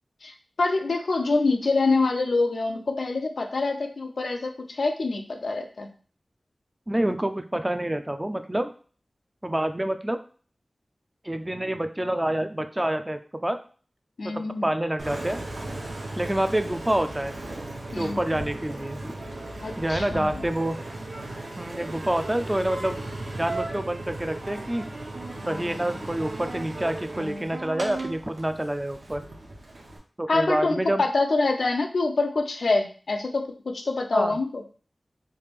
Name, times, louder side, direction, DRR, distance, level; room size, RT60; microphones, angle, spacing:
voice 1, 0.2-5.9 14.2-14.7 17.9-18.2 19.6-20.4 30.3-34.6, left 3 dB, 85° left, 4 dB, 0.5 m, -26 dB
voice 2, 6.9-8.7 9.4-10.2 11.2-13.6 14.2-15.4 16.2-17.4 17.9-19.1 19.8-20.8 21.6-23.0 23.3-24.9 25.4-29.2 30.2-31.0 34.1-34.4, right 1 dB, 15° right, 9 dB, 0.3 m, -27 dB
Engine, 15.0-30.0, right 2 dB, 80° right, 0.8 m, -36 dB
3.2 x 2.4 x 3.4 m, 0.41 s
wide cardioid pair, 85°, 0 cm